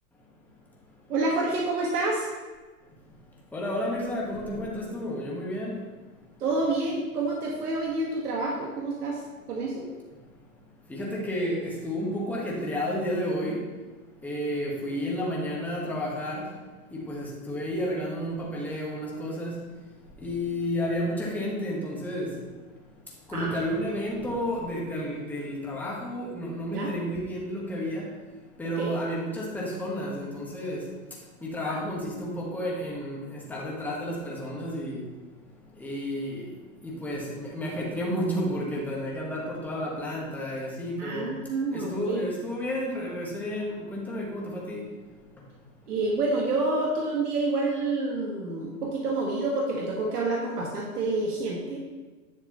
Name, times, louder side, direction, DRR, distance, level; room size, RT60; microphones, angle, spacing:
voice 1, 1.1-2.3 6.4-9.2 9.5-9.9 23.3-23.6 26.7-26.9 28.6-29.0 31.6-31.8 41.0-42.3 45.9-51.8, right 2 dB, 90° right, -3 dB, 1.8 m, -28 dB
voice 2, 3.5-5.7 10.9-13.6 14.2-16.4 16.9-19.6 20.2-22.3 23.3-28.1 28.6-30.8 31.4-35.0 35.8-36.5 36.8-41.3 41.7-44.9, equal, 5° left, -4 dB, 1.3 m, -31 dB
10.5 x 6.5 x 3.0 m, 1.3 s
hypercardioid pair, 150°, 45 cm